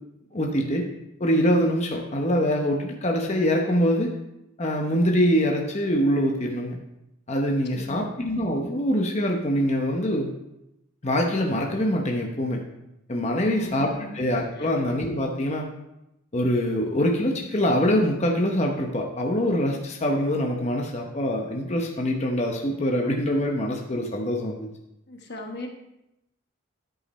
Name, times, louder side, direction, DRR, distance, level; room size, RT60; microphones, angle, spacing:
voice 1, 0.3-0.9 1.2-4.1 4.6-6.8 7.3-10.3 11.0-12.6 13.1-15.7 16.3-24.7, equal, 30° left, 1 dB, 0.9 m, -24 dB
voice 2, 7.7-8.1 13.4-14.2 14.6-14.7 25.1-25.7, left 1 dB, 50° left, 3 dB, 1.3 m, -38 dB
11.5 x 5.3 x 4.2 m, 0.87 s
head